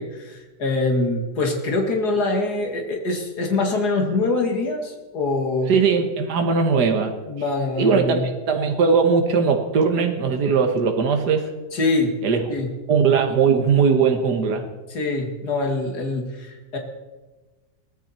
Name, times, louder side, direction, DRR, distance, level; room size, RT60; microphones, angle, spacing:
voice 1, 0.0-5.7 7.2-8.3 11.7-12.2 12.5-12.7 14.9-16.8, left 2 dB, 70° left, 2 dB, 2.8 m, -24 dB
voice 2, 5.7-7.1 7.8-11.5 12.2-12.4 12.9-14.6, right 5 dB, 75° right, 5 dB, 2.0 m, -19 dB
21.5 x 15.0 x 4.4 m, 1.2 s
omnidirectional pair, 1.8 m